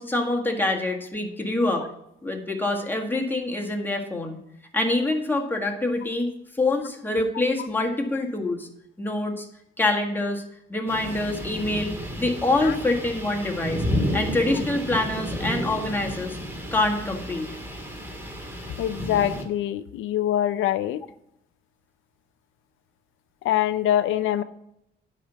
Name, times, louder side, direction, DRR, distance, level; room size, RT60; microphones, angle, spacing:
voice 1, 0.0-1.9 2.2-4.4 4.7-6.3 6.6-8.7 9.0-9.5 9.8-10.4 10.7-13.8 14.1-16.4 16.7-17.5, left 2 dB, 10° left, 0 dB, 1.7 m, -25 dB
sound 1, 10.9-19.4, equal, 10° right, 2.0 m, -31 dB
voice 2, 18.8-21.0 23.4-24.4, left 11 dB, 80° left, 14 dB, 0.6 m, -24 dB
10.0 x 4.3 x 6.9 m, 0.79 s
cardioid pair, 90°, 20 cm